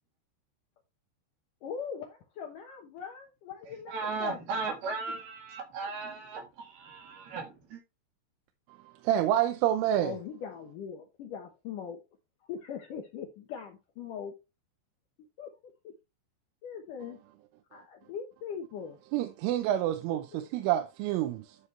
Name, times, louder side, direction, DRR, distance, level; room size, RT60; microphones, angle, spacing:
voice 1, 1.6-4.6 5.8-5.9 10.0-12.0 12.5-14.4 15.4-15.5 15.8-15.9 16.6-17.2 17.7-19.0 20.3-20.5, left 7 dB, 80° left, 1.8 m, -41 dB
voice 2, 3.9-7.8, right 4 dB, 60° right, 3.5 m, -36 dB
voice 3, 9.0-10.1 19.1-21.6, right 12 dB, 85° right, 3.3 m, -28 dB
12.0 x 5.7 x 3.2 m
omnidirectional pair, 5.6 m